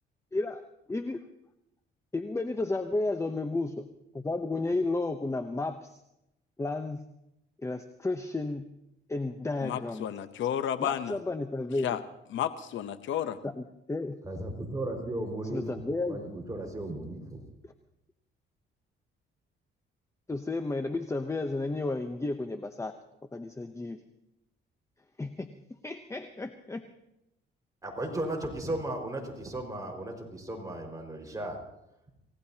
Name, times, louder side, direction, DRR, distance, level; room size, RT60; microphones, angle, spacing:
voice 1, 0.3-0.6 0.9-1.2 2.1-3.9 4.1-6.0 6.6-7.0 7.6-8.7 9.1-10.1 10.8-12.0 13.4-14.1 15.5-16.2 20.3-22.9 23.3-24.0 25.2-25.5 25.8-26.9, left 2 dB, 15° left, 8 dB, 0.8 m, -32 dB
voice 2, 9.6-11.2 11.8-12.0 12.3-13.4, left 10 dB, 75° left, 11 dB, 0.9 m, -32 dB
voice 3, 14.2-15.8 16.1-17.4 27.8-31.6, right 1 dB, 15° right, 2 dB, 5.2 m, -35 dB
27.5 x 17.0 x 2.9 m, 0.86 s
cardioid pair, 90°, 20 cm